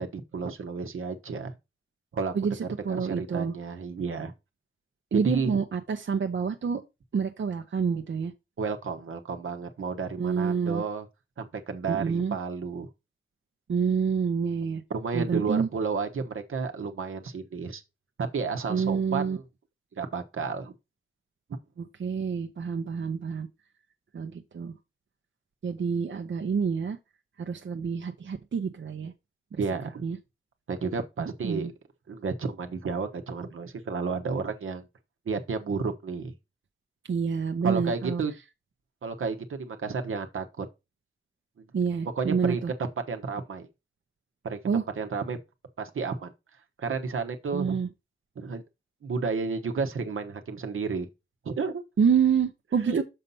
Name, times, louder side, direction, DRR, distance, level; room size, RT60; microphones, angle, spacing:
voice 1, 0.0-1.5 2.1-2.3 2.6-4.3 5.1-5.5 8.6-11.0 11.4-12.9 14.9-17.8 18.2-19.4 20.0-20.7 29.6-30.0 30.7-31.7 32.1-34.9 35.3-36.3 37.6-38.3 39.0-40.7 41.6-41.7 42.2-43.7 44.4-45.4 45.8-46.3 46.8-47.8 48.4-48.6 49.0-51.1 51.4-51.8 52.8-53.0, right 5 dB, 80° right, 1.1 m, -31 dB
voice 2, 2.8-3.5 5.1-6.8 7.1-8.3 10.2-10.8 11.9-12.4 13.7-14.8 15.1-15.7 18.7-19.4 22.0-23.5 24.1-24.7 25.6-27.0 27.4-29.1 29.5-29.6 30.0-30.2 31.2-31.7 37.1-38.2 41.7-42.7 44.6-44.8 47.5-47.9 52.0-53.0, right 6 dB, 65° right, 0.8 m, -27 dB
6.6 x 4.2 x 5.5 m
cardioid pair, 65°, 21 cm